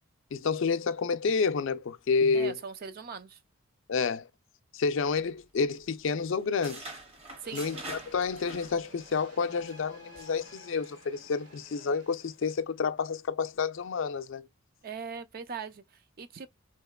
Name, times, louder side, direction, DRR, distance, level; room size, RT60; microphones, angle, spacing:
voice 1, 0.3-2.5 3.9-4.3 4.7-6.9 7.5-14.5, left 5 dB, 60° left, 0.4 m, -29 dB
voice 2, 2.3-3.4 7.4-7.7 14.8-16.5, right 6 dB, 45° right, 0.4 m, -40 dB
sound 1, 5.1-5.9 6.2-9.2 9.5-9.7 10.2-10.4, right 2 dB, 30° right, 0.8 m, -45 dB
sound 2, 7.4-12.9, equal, 80° right, 2.1 m, -53 dB
3.8 x 2.9 x 2.3 m
head